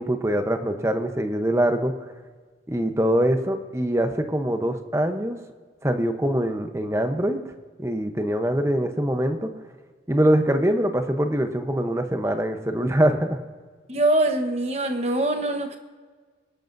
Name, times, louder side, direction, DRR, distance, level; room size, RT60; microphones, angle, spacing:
voice 1, 0.0-1.9 2.7-5.4 5.8-7.5 7.8-9.5 10.1-13.4, right 1 dB, 15° right, 6 dB, 0.8 m, -23 dB
voice 2, 13.9-15.8, right 1 dB, 35° right, 5 dB, 1.1 m, -23 dB
23.0 x 12.0 x 2.7 m, 1.5 s
head